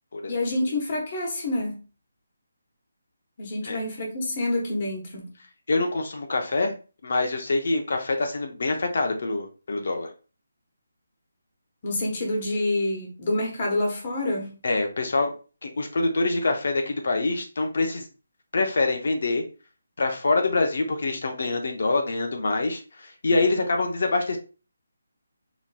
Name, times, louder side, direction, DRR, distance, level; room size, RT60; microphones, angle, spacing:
voice 1, 0.3-1.8 3.4-5.3 11.8-14.5, left 1 dB, 30° left, 1.1 m, -27 dB
voice 2, 5.7-6.7 7.0-10.1 14.6-15.3 15.6-18.1 18.5-19.4 20.0-24.4, left 3 dB, 55° left, 0.7 m, -25 dB
4.1 x 2.9 x 2.2 m
hypercardioid pair, 175°, 0 cm